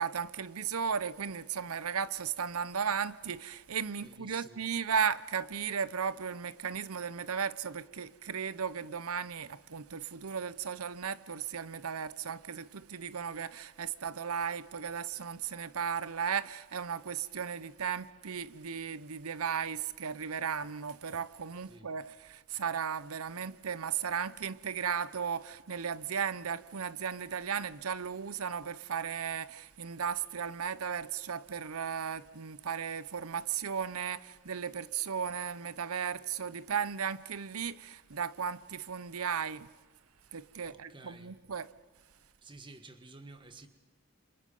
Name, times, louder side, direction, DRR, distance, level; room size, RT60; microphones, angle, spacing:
voice 1, 0.0-39.7 40.3-41.7, right 7 dB, 90° right, 0.8 m, -35 dB
voice 2, 4.0-4.7 21.6-21.9 40.7-41.4 42.4-43.7, right 3 dB, 20° right, 1.5 m, -52 dB
28.5 x 27.0 x 5.5 m
head